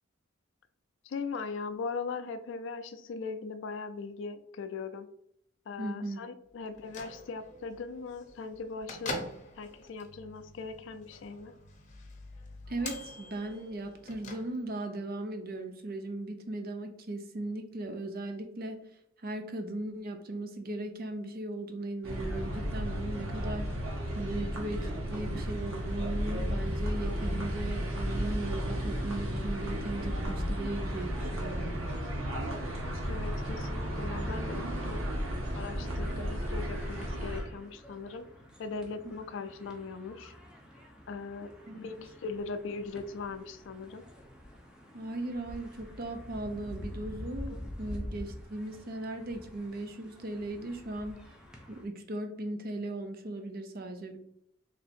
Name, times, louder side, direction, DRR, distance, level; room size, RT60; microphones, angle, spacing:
voice 1, 1.0-5.1 5.7-9.2 9.6-11.5 33.1-35.0 35.5-38.2 38.6-40.3 41.1-44.0 47.5-47.6 47.9-48.0, left 4 dB, 65° left, 10 dB, 0.4 m, -39 dB
voice 2, 5.8-6.2 12.7-18.8 19.2-23.7 24.2-31.8 41.7-41.8 44.9-51.3 51.7-54.2, right 2 dB, 50° right, 6 dB, 0.6 m, -38 dB
Bell / Microwave oven, 6.6-14.9, left 2 dB, 40° left, 0.8 m, -45 dB
sound 1, 22.0-37.4, equal, 90° right, 1.0 m, -33 dB
sound 2, 35.8-51.9, equal, 5° right, 0.7 m, -47 dB
3.3 x 2.7 x 4.2 m, 0.72 s
head